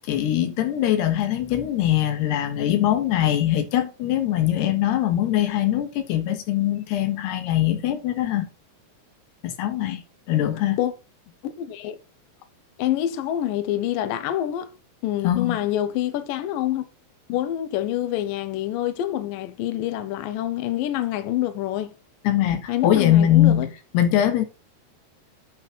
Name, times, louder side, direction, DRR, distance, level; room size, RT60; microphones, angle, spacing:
voice 1, 0.1-8.5 9.4-10.0 10.3-10.8 15.2-15.6 22.3-24.5, left 12 dB, 90° left, 3.5 m, -22 dB
voice 2, 11.4-12.0 12.8-14.7 15.0-16.8 17.3-21.9 22.7-23.7, left 12 dB, 75° left, 2.3 m, -26 dB
9.7 x 4.3 x 6.1 m
omnidirectional pair, 4.6 m